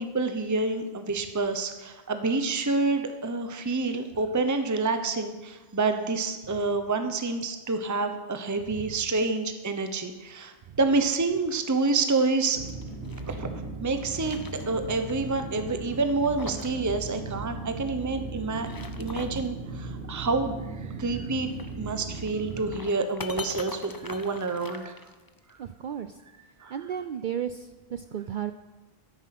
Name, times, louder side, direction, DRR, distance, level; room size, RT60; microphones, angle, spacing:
voice 1, 0.0-10.5 10.8-12.6 13.3-13.5 13.8-14.4 14.7-18.7 19.0-20.6 21.0-21.5 21.8-24.9 26.6-26.7, right 3 dB, 20° right, 7 dB, 0.9 m, -28 dB
sound 1, 11.6-13.4 13.9-15.1 15.4-15.5 16.0-16.8 17.1-17.2 18.4-19.5 21.4-25.5, left 3 dB, 25° left, 0.6 m, -43 dB
sound 2, 12.5-22.8, right 3 dB, 75° right, 1.4 m, -37 dB
voice 2, 18.3-18.9 25.6-26.2 26.7-28.5, right 9 dB, 60° right, 10 dB, 0.6 m, -35 dB
13.0 x 10.5 x 6.0 m, 1.2 s
omnidirectional pair, 1.1 m